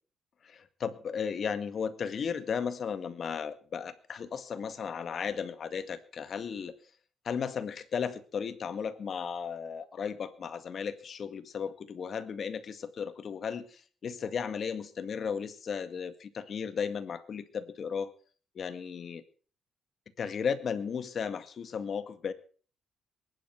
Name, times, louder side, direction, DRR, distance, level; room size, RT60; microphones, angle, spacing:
voice 1, 0.4-6.7 7.3-18.1 18.6-19.2 20.2-22.3, left 6 dB, 55° left, 12 dB, 1.9 m, -35 dB
20.5 x 11.5 x 6.0 m, 0.42 s
cardioid pair, 90°, 0 cm